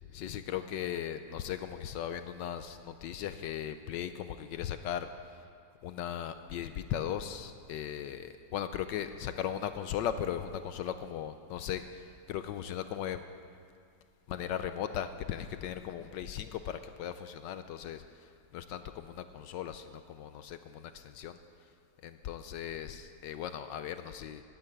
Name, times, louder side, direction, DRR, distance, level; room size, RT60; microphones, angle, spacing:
voice 1, 0.1-5.1 5.8-13.2 14.3-21.4 22.0-24.4, left 9 dB, 75° left, 10 dB, 1.1 m, -38 dB
12.5 x 9.1 x 9.6 m, 2.2 s
omnidirectional pair, 2.2 m